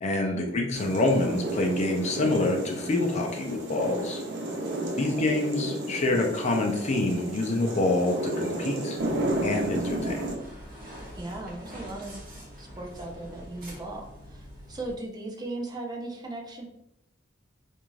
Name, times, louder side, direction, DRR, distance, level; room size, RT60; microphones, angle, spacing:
voice 1, 0.0-4.2 5.0-9.0 9.4-10.4, left 2 dB, 40° left, 2 dB, 0.5 m, -26 dB
sound 1, 0.7-10.4, right 1 dB, 70° right, 0.6 m, -32 dB
voice 2, 4.8-5.3 11.2-12.2 12.6-16.7, right 2 dB, 20° right, 1 dB, 0.4 m, -38 dB
sound 2, 9.0-14.9, equal, 50° right, 1.0 m, -45 dB
2.5 x 2.3 x 3.0 m, 0.79 s
head